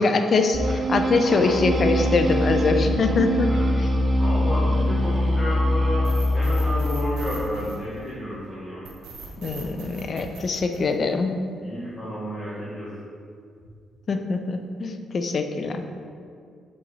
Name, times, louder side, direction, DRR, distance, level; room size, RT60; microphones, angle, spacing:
voice 1, 0.0-3.5 3.8-3.9 9.4-11.4 14.1-15.8, left 4 dB, 45° left, 6 dB, 0.6 m, -23 dB
sound 1, 0.5-7.1, equal, 30° right, 0.9 m, -23 dB
voice 2, 4.2-8.8 11.6-12.9, equal, 15° left, -9 dB, 1.8 m, -31 dB
sound 2, 6.0-8.3 8.8-11.3, right 2 dB, 80° right, 1.3 m, -39 dB
6.3 x 5.5 x 4.2 m, 2.3 s
cardioid pair, 90°, 0 cm